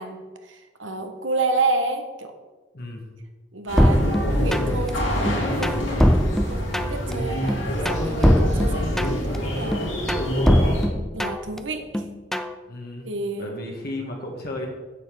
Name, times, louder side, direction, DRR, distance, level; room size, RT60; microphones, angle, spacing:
voice 1, 0.0-2.3 3.5-6.2 6.5-9.9 11.1-12.0 13.0-13.5, right 3 dB, 75° right, 6 dB, 1.4 m, -30 dB
sound 1, 3.7-10.9, equal, 85° left, 3.5 m, -25 dB
sound 2, 3.8-4.9 5.3-7.1 7.5-9.4 9.7-11.6 11.9-12.5, equal, ahead, 0.5 m, -21 dB
voice 2, 4.4-4.9 12.7-13.1 13.3-14.7, left 1 dB, 55° left, 0 dB, 1.8 m, -34 dB
8.3 x 8.2 x 6.9 m, 1.2 s
head